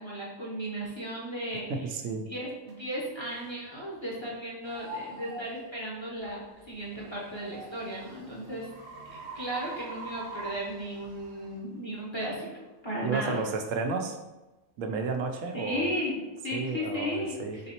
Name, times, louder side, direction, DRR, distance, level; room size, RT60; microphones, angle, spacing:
voice 1, 0.0-1.6 2.3-8.7 9.0-12.5 12.8-13.4 15.5-17.3, equal, 25° left, -5 dB, 0.8 m, -35 dB
voice 2, 1.7-2.3 13.0-14.2 14.8-15.9 16.5-17.6, right 4 dB, 80° right, 4 dB, 0.9 m, -32 dB
sound 1, 2.7-2.8 3.4-3.6 4.2-4.4 7.0-11.5, right 4 dB, 60° right, 1.2 m, -43 dB
sound 2, 4.6-11.6, left 1 dB, 30° right, 0.4 m, -48 dB
4.1 x 3.8 x 2.8 m, 1.1 s
omnidirectional pair, 1.3 m